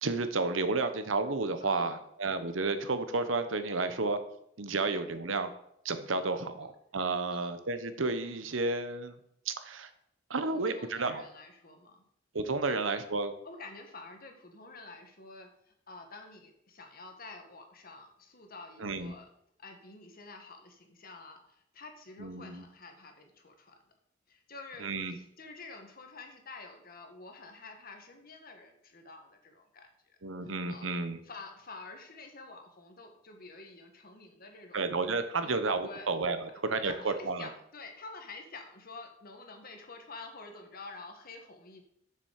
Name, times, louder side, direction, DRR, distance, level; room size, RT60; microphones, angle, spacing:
voice 1, 0.0-4.2 4.6-5.5 5.8-9.1 9.4-9.9 10.3-11.2 12.3-13.3 18.8-19.1 22.2-22.6 24.8-25.2 30.2-31.2 34.7-37.5, right 3 dB, 90° right, 10 dB, 1.0 m, -31 dB
voice 2, 1.6-2.0 4.8-5.0 6.2-6.4 7.3-7.5 10.5-12.0 12.6-12.8 13.4-19.3 19.6-23.8 24.3-30.2 30.4-30.9 31.2-34.8 35.4-35.5 35.8-36.1 36.8-41.8, left 3 dB, 50° left, 4 dB, 1.6 m, -49 dB
7.1 x 6.9 x 6.5 m, 0.73 s
head